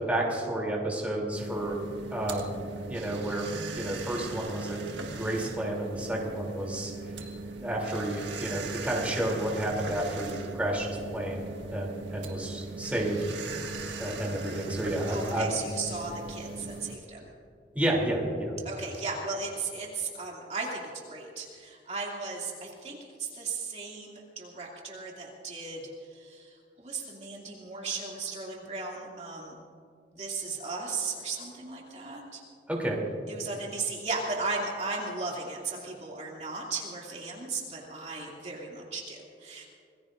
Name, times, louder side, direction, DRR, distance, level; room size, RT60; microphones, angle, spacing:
voice 1, 0.0-1.8 2.1-2.6 2.9-3.4 3.7-4.8 5.1-6.9 7.5-13.2 14.0-15.6 17.7-18.5 32.7-33.0, right 1 dB, 10° right, -3 dB, 3.2 m, -31 dB
sound 1, 1.3-17.0, right 3 dB, 85° right, 1.7 m, -39 dB
voice 2, 15.1-17.2 18.6-29.5 30.1-32.4 33.3-39.7, right 3 dB, 40° right, -3 dB, 2.7 m, -36 dB
27.0 x 20.0 x 2.6 m, 2.3 s
head